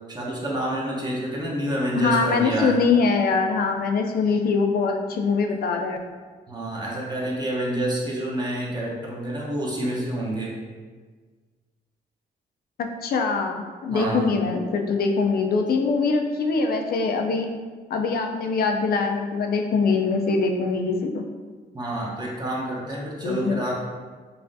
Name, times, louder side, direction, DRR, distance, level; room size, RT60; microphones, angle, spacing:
voice 1, 0.1-2.8 6.5-10.5 13.9-14.3 21.7-23.7, right 1 dB, 25° right, -4 dB, 0.9 m, -28 dB
voice 2, 2.0-6.0 12.8-17.5 17.9-21.2 23.2-23.6, left 4 dB, 65° left, 4 dB, 0.5 m, -23 dB
5.5 x 2.4 x 2.6 m, 1.5 s
cardioid pair, 115°, 17 cm